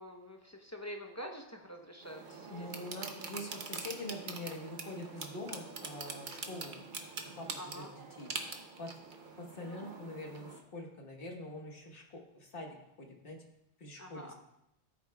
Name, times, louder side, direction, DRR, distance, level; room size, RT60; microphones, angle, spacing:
voice 1, 0.0-2.7 7.6-7.9 14.0-14.3, equal, 15° left, 2 dB, 0.8 m, -46 dB
sound 1, 2.0-10.6, right 4 dB, 50° right, 0.9 m, -44 dB
voice 2, 2.5-6.8 7.2-8.3 8.8-8.9 9.4-13.4 13.8-14.3, left 1 dB, 60° left, 1 dB, 1.6 m, -44 dB
14.0 x 8.2 x 2.3 m, 0.83 s
omnidirectional pair, 1.1 m